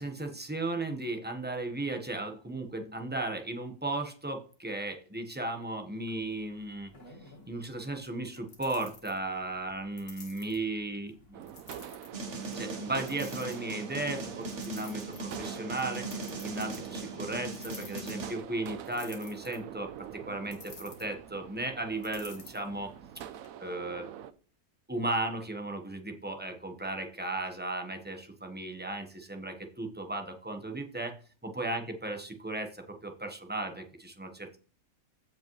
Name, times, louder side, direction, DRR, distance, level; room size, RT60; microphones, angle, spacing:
voice 1, 0.0-6.9 7.4-11.5 12.5-23.2 23.6-24.1 24.9-31.2 31.4-34.6, right 2 dB, 10° right, 4 dB, 0.9 m, -36 dB
sound 1, 5.9-23.5, left 4 dB, 70° left, 2.5 m, -54 dB
sound 2, 11.3-24.3, right 10 dB, 70° right, 1.0 m, -46 dB
sound 3, 12.1-18.4, right 2 dB, 50° right, 1.4 m, -39 dB
15.0 x 5.1 x 3.1 m, 0.40 s
omnidirectional pair, 1.7 m